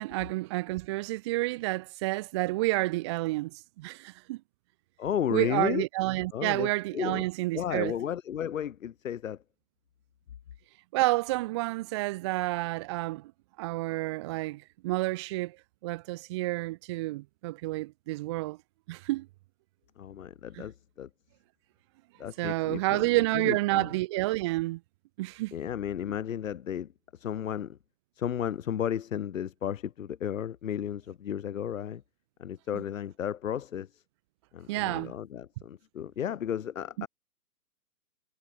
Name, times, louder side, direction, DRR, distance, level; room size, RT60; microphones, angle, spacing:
voice 1, 0.0-4.4 5.3-8.0 10.9-13.3 13.6-18.6 18.9-19.3 20.5-20.7 22.4-24.8 25.2-25.5 34.7-35.1 37.0-37.1, right 20 dB, 20° right, 0.8 m, -30 dB
voice 2, 5.0-5.8 6.3-7.2 7.5-9.4 20.0-21.1 22.2-23.1 23.3-23.9 25.5-27.8 28.2-32.0 32.4-34.0 34.5-37.1, left 9 dB, 55° left, 3.8 m, -33 dB
hypercardioid pair, 155°, 46 cm